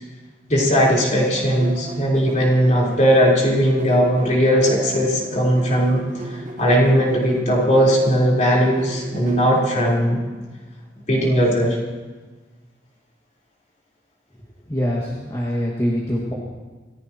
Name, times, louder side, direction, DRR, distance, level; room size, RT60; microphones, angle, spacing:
voice 1, 0.5-6.0 6.3-10.2 11.1-11.8, equal, 40° left, -4 dB, 4.2 m, -18 dB
sound 1, 0.6-9.8, right 1 dB, 40° right, 2.2 m, -36 dB
voice 2, 14.7-16.3, equal, 20° left, -5 dB, 2.0 m, -24 dB
27.0 x 15.5 x 3.0 m, 1.3 s
head